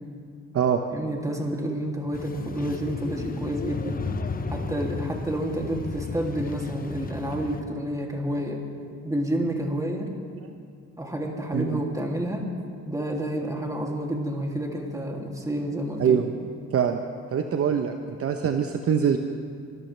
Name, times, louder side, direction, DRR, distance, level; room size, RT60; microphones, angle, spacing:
voice 1, 0.9-4.0 4.5-8.6 9.0-10.1 11.0-12.5 12.9-16.2, right 1 dB, 10° right, 0 dB, 2.5 m, -29 dB
sound 1, 2.1-7.6, left 4 dB, 30° left, 0.9 m, -34 dB
voice 2, 16.7-17.0 17.3-19.2, right 8 dB, 50° right, 5 dB, 0.8 m, -24 dB
24.0 x 13.5 x 3.3 m, 2.3 s
cardioid pair, 90°, 30 cm